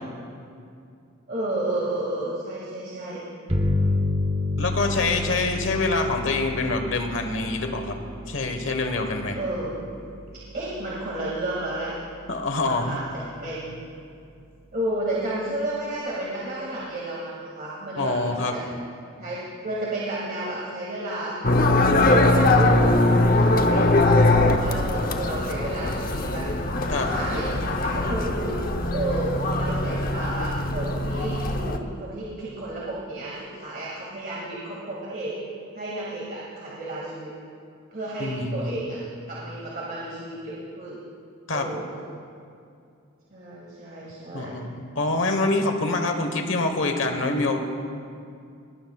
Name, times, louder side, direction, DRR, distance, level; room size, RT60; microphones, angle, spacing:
voice 1, 1.3-3.2 4.7-5.2 5.7-5.8 9.3-9.8 10.5-11.9 12.7-13.8 14.7-18.6 19.2-21.4 22.1-26.5 27.0-27.5 27.7-28.6 28.9-35.3 35.7-37.3 37.9-39.0 39.3-41.0 41.5-42.0 43.3-44.6, right 1 dB, 45° right, -6 dB, 2.3 m, -32 dB
sound 1, 3.5-12.8, left 2 dB, 30° right, 1.2 m, -30 dB
voice 2, 4.6-7.9 8.3-9.4 12.3-13.0 18.0-18.5 26.9-27.1 38.2-38.8 41.5-41.7 44.3-47.6, left 2 dB, 65° left, 5 dB, 1.3 m, -25 dB
sound 2, 21.4-31.8, left 2 dB, 45° left, 0.8 m, -21 dB
20.5 x 19.0 x 2.4 m, 2.4 s
head